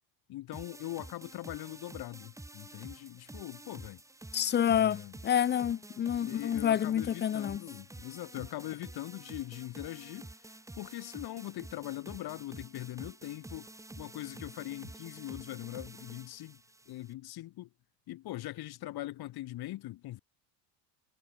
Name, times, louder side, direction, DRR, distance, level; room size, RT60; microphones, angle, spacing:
voice 1, 0.3-4.0 4.7-5.1 6.2-13.7 14.0-17.7 18.1-20.2, left 16 dB, 55° left, 2.7 m, -41 dB
sound 1, 0.5-17.1, right 2 dB, 5° right, 2.7 m, -49 dB
voice 2, 4.3-7.6, left 9 dB, 25° left, 0.5 m, -28 dB
cardioid pair, 135°, 46 cm